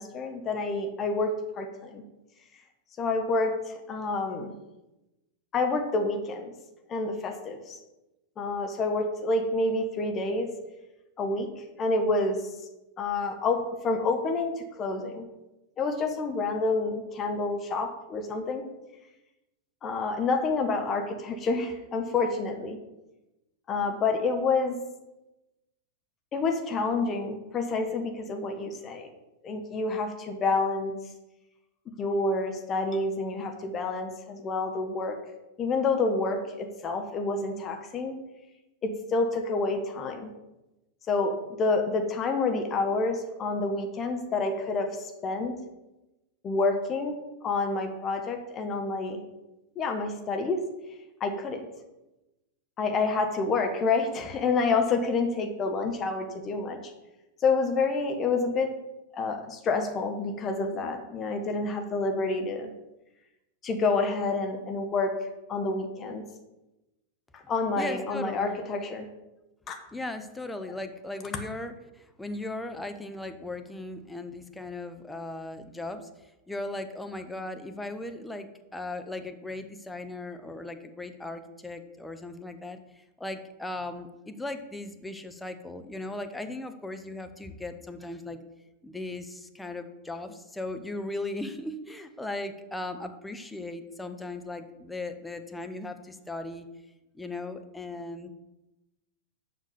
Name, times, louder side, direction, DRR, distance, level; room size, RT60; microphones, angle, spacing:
voice 1, 0.0-2.0 3.0-4.5 5.5-6.5 6.9-7.8 8.4-10.5 11.2-12.4 13.0-15.3 15.8-18.6 19.8-22.8 23.7-24.8 26.3-29.1 29.4-31.0 32.0-35.2 35.6-38.2 38.8-40.3 41.1-45.6 46.4-47.2 47.4-49.2 49.7-50.7 51.2-51.7 52.8-56.9 57.4-58.7 59.1-62.7 63.6-65.2 65.5-66.2 67.3-69.1 69.7-69.8, left 3 dB, 25° left, 5 dB, 1.2 m, -28 dB
voice 2, 67.8-68.6 69.9-88.4 88.8-96.7 97.1-98.3, left 2 dB, 5° left, 6 dB, 0.9 m, -37 dB
7.4 x 5.8 x 6.9 m, 0.99 s
figure-of-eight pair, 90°, 0 cm